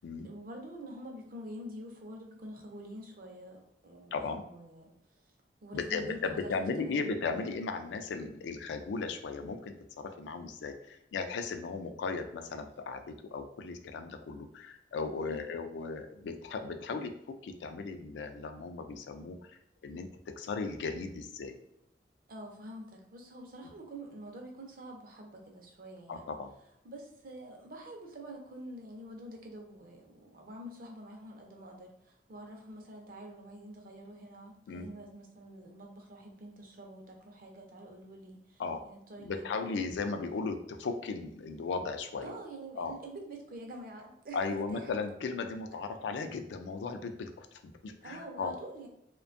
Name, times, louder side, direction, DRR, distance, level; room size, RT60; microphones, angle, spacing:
voice 1, 0.2-4.1 4.4-4.9 5.6-6.5 6.8-7.0 15.2-15.4 22.3-26.3 26.8-39.5 42.2-44.9 48.0-48.9, right 1 dB, 55° right, 1 dB, 0.5 m, -47 dB
voice 2, 4.1-4.5 5.7-21.6 26.1-26.5 34.7-34.9 38.6-38.8 39.2-42.4 42.8-42.9 44.3-48.5, left 4 dB, 80° left, 6 dB, 0.3 m, -36 dB
2.5 x 2.2 x 2.5 m, 0.78 s
head